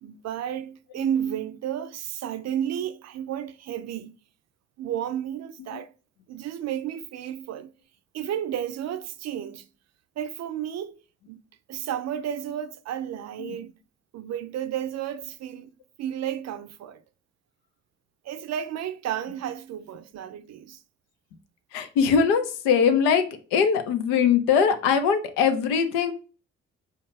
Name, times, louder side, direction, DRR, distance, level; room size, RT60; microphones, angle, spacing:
voice 1, 0.0-4.1 4.8-5.9 6.3-7.7 8.1-9.7 10.2-11.0 11.3-11.4 11.7-13.7 14.1-15.7 16.0-17.0 18.2-20.8, right 10 dB, 55° right, 0.4 m, -32 dB
voice 2, 21.7-23.3 23.5-26.1, left 6 dB, 85° left, 0.6 m, -21 dB
4.4 x 2.4 x 3.1 m
hypercardioid pair, 45°, 33 cm